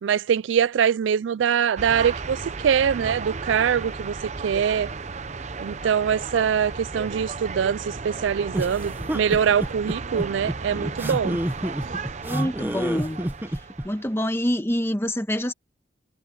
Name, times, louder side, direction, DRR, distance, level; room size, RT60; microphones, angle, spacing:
voice 1, 0.0-4.2 4.4-4.9 5.6-11.4, right 7 dB, 80° right, 0.4 m, -23 dB
sound 1, 1.8-14.2, right 4 dB, 40° right, 0.8 m, -34 dB
sound 2, 8.5-13.9, equal, 10° right, 1.0 m, -29 dB
voice 2, 12.2-13.2 13.8-15.5, equal, 15° left, 1.3 m, -26 dB
head